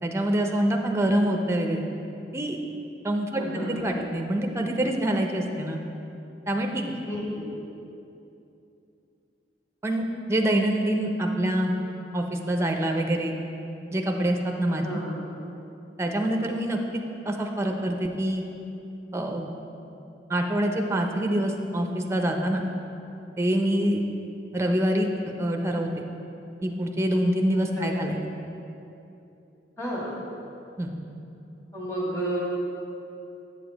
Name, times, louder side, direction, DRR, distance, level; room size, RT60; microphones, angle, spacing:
voice 1, 0.0-1.8 2.3-2.6 3.0-5.8 6.5-6.9 9.8-10.0 10.3-11.7 12.1-13.3 13.9-15.0 16.0-16.8 17.3-18.4 19.1-19.5 20.3-22.6 23.4-24.0 24.5-26.0 26.6-28.2 30.8-30.9, right 1 dB, 15° right, 3 dB, 0.5 m, -25 dB
voice 2, 3.3-3.9 7.0-7.5 14.8-15.2 27.8-27.9 29.8-30.1 31.7-32.4, right 1 dB, 15° left, -6 dB, 1.9 m, -31 dB
8.2 x 6.8 x 4.0 m, 2.8 s
head